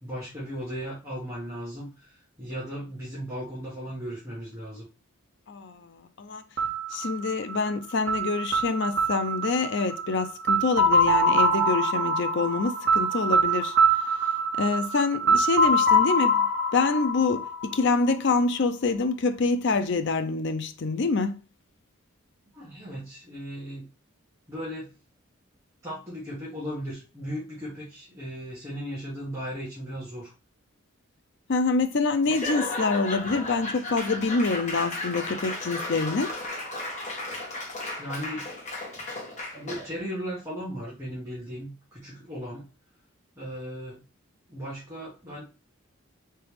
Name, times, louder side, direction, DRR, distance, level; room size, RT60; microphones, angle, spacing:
voice 1, 0.0-4.9 22.5-23.8 24.5-24.9 25.8-30.3 38.0-38.8 39.5-42.6 43.4-44.0 44.5-45.4, equal, 15° right, 1.3 m, -36 dB
voice 2, 5.5-6.4 6.9-13.8 14.6-16.5 16.7-21.4 31.5-36.3, left 4 dB, 60° left, 0.5 m, -26 dB
sound 1, 6.6-18.4, right 1 dB, 55° right, 1.1 m, -24 dB
Laughter / Applause / Crowd, 32.2-40.0, left 2 dB, 35° left, 1.2 m, -34 dB
3.9 x 3.4 x 3.2 m
head